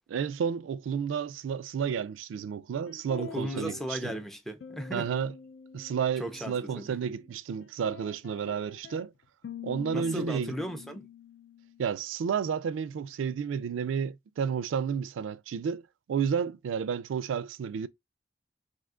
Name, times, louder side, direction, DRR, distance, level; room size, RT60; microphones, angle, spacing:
voice 1, 0.1-4.1 4.9-5.3 5.7-9.1 9.6-10.5 11.8-17.9, right 7 dB, 85° right, 0.3 m, -31 dB
sound 1, 2.9-4.3 4.6-7.3 7.6-12.0, left 7 dB, 65° left, 0.4 m, -46 dB
voice 2, 3.2-5.1 6.2-6.9 9.9-11.1, equal, ahead, 0.5 m, -36 dB
2.7 x 2.3 x 3.6 m
head